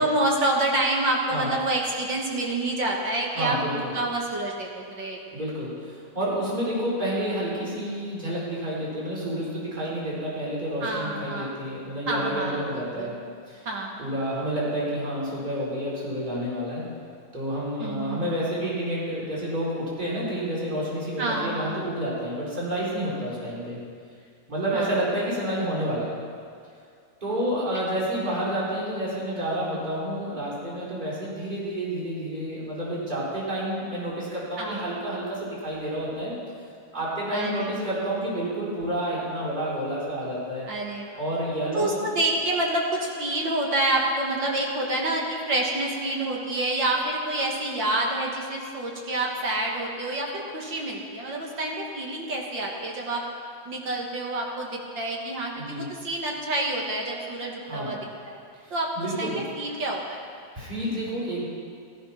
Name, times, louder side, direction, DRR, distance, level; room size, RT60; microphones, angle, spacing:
voice 1, 0.0-5.4 10.8-11.6 12.1-13.1 13.7-14.0 17.8-18.3 21.2-21.8 24.7-25.0 27.7-27.8 34.6-34.9 37.3-37.7 40.7-41.2 41.7-53.2 53.7-58.0 58.3-58.4 58.7-60.2, right 2 dB, 45° right, -1 dB, 1.7 m, -28 dB
voice 2, 3.3-3.9 5.3-13.1 13.5-13.7 14.0-16.8 17.3-23.8 24.5-26.1 27.2-36.3 36.9-40.7 41.2-42.1 55.6-55.9 57.6-58.0 58.5-59.4 60.5-61.5, right 1 dB, 15° right, -7 dB, 4.0 m, -29 dB
15.0 x 14.0 x 5.8 m, 2.3 s
omnidirectional pair, 3.6 m